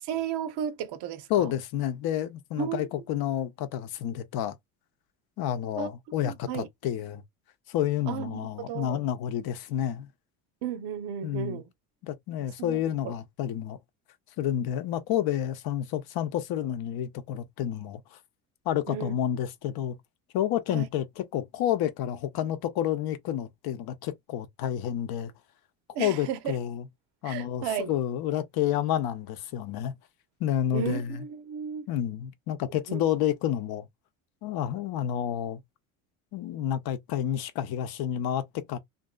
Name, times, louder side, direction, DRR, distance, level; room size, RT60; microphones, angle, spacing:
voice 1, 0.0-1.5 2.6-2.9 5.8-5.9 6.2-6.7 8.1-9.1 10.6-11.6 12.6-13.1 18.9-19.2 20.7-20.9 25.9-26.6 27.2-27.9 30.7-31.9 32.9-33.0, right 9 dB, 65° right, 0.8 m, -34 dB
voice 2, 1.3-4.5 5.4-7.2 7.7-10.1 11.2-11.6 12.0-13.8 14.4-18.0 18.7-20.0 20.3-25.3 26.0-26.8 27.2-29.9 30.4-31.2 31.9-33.9 34.4-35.6 36.3-38.8, left 10 dB, 60° left, 0.7 m, -29 dB
2.6 x 2.5 x 2.3 m
supercardioid pair, 90°, 43 cm